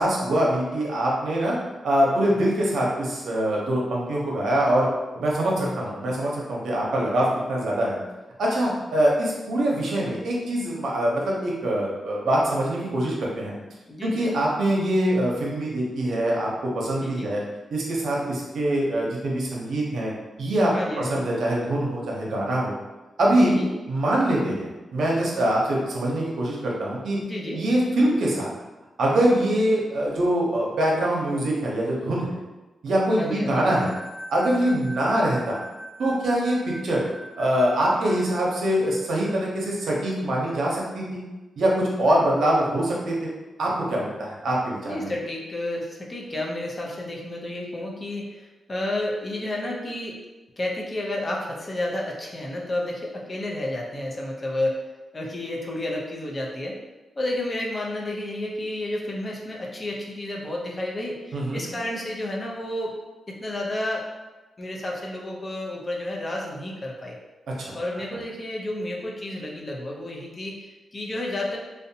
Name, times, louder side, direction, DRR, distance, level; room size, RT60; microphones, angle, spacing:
voice 1, 0.0-1.5 1.8-4.9 5.1-8.0 8.4-13.5 14.0-16.5 16.7-17.4 17.7-20.1 20.4-22.7 23.2-23.6 23.9-27.2 27.5-28.5 29.0-32.3 32.8-33.9 34.3-35.6 36.0-37.0 37.4-41.2 41.6-43.3 43.6-45.1 61.3-61.6 67.6-67.7, right 1 dB, 80° right, -3 dB, 0.6 m, -24 dB
voice 2, 5.2-6.0 13.9-14.3 17.0-17.3 20.7-21.3 23.3-23.7 27.2-27.6 33.2-33.7 44.9-50.2 50.6-54.8 55.1-56.8 57.2-62.9 63.3-64.1 64.6-67.2 67.7-71.6, left 1 dB, 30° left, -2 dB, 0.5 m, -31 dB
sound 1, 33.4-39.9, right 1 dB, 35° right, 0.4 m, -42 dB
2.6 x 2.1 x 2.7 m, 1.1 s
cardioid pair, 100°, 0 cm